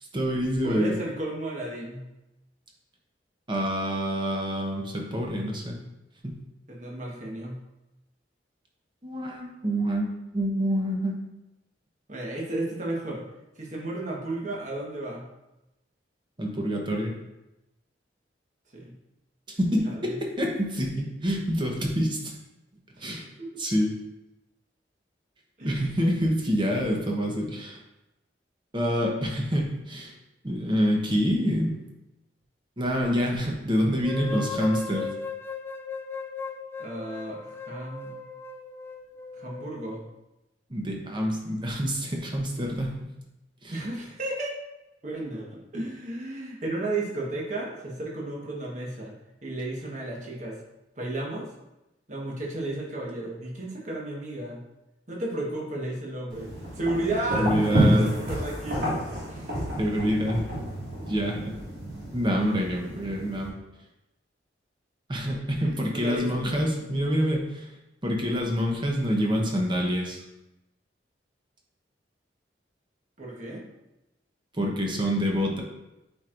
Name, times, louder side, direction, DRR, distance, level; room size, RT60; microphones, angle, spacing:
voice 1, 0.1-1.0 3.5-5.8 6.2-6.4 9.0-11.2 16.4-17.2 19.5-22.3 23.0-23.3 23.6-23.9 25.6-27.8 28.7-30.1 30.4-31.8 32.8-35.1 40.7-43.1 43.6-43.8 57.4-58.1 59.8-60.5 61.0-61.5 62.1-63.5 65.1-67.7 68.0-70.2 74.6-75.6, equal, 25° right, 0 dB, 0.9 m, -27 dB
voice 2, 0.6-2.0 6.7-7.6 12.1-13.2 13.5-15.2 18.7-18.9 19.8-20.2 23.0-23.6 25.6-25.9 36.8-38.1 39.3-40.0 43.7-44.5 45.0-49.1 49.4-50.6 51.0-51.5 52.1-54.6 55.1-56.5 56.8-58.9 59.2-59.5 65.6-66.6 73.2-73.6, right 2 dB, 40° right, -2 dB, 1.4 m, -33 dB
sound 1, 34.0-40.0, left 4 dB, 15° left, 0.3 m, -37 dB
sound 2, 56.3-63.5, equal, 65° right, 2.0 m, -29 dB
8.1 x 4.5 x 2.6 m, 0.94 s
head